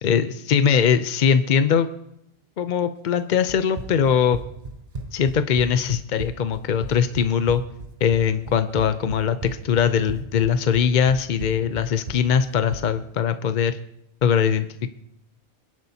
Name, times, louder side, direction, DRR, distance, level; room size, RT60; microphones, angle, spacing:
voice 1, 0.0-1.9 2.6-4.4 5.1-7.6 8.0-9.4 9.6-13.8 14.2-14.7, left 7 dB, 55° left, 10 dB, 0.7 m, -21 dB
Run, 3.5-12.9, right 2 dB, 40° right, 1.0 m, -36 dB
26.5 x 10.5 x 2.8 m, 0.79 s
omnidirectional pair, 1.1 m